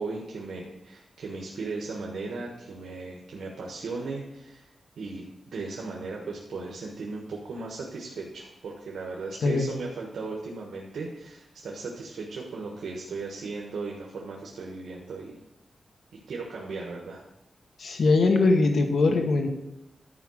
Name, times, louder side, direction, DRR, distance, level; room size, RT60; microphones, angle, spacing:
voice 1, 0.0-4.7 5.0-15.4 16.3-17.2, right 3 dB, 90° right, -1 dB, 1.3 m, -37 dB
voice 2, 17.8-19.5, left 3 dB, 75° left, 4 dB, 1.1 m, -21 dB
11.0 x 4.8 x 6.3 m, 0.90 s
wide cardioid pair, 115°, 0 cm